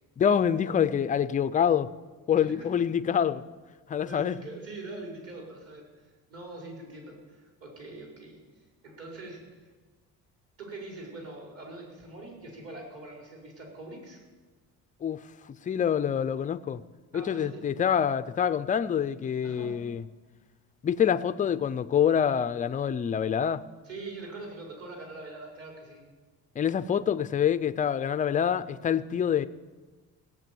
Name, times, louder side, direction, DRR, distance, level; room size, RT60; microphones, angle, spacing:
voice 1, 0.2-1.9 2.3-3.4 3.9-4.4 15.0-15.2 15.7-16.8 17.1-20.0 20.8-23.6 26.6-29.5, left 8 dB, 25° left, 0.4 m, -26 dB
voice 2, 4.0-9.7 10.6-14.2 17.1-17.6 19.4-19.7 23.8-26.0, right 2 dB, 45° right, 4.8 m, -43 dB
16.5 x 7.6 x 9.3 m
cardioid pair, 155°, 34 cm